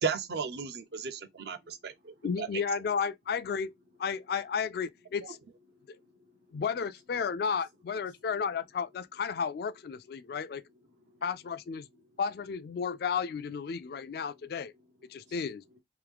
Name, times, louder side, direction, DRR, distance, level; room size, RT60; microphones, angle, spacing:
voice 1, 0.0-2.6, right 5 dB, 60° right, 0.5 m, -35 dB
voice 2, 2.2-3.7 4.0-5.4 6.5-10.6 11.2-11.9 12.2-14.7 15.1-15.6, left 6 dB, 60° left, 0.3 m, -33 dB
voice 3, 5.7-6.6 8.1-8.2 10.2-10.4 10.9-11.3 15.1-15.4, right 1 dB, 85° right, 1.2 m, -60 dB
3.5 x 3.1 x 3.4 m
head